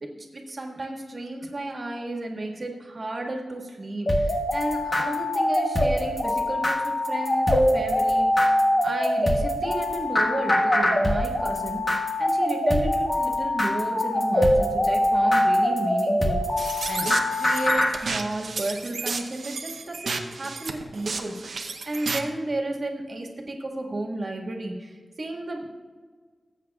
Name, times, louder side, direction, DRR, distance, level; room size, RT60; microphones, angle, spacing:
voice 1, 0.0-8.5 8.8-16.4 16.9-25.7, right 2 dB, 50° right, 0 dB, 1.7 m, -33 dB
sound 1, 4.1-17.9, left 1 dB, 35° left, 1.4 m, -23 dB
sound 2, 16.6-22.3, right 4 dB, 85° right, 0.8 m, -32 dB
18.5 x 8.1 x 2.4 m, 1.5 s
wide cardioid pair, 90°, 0 cm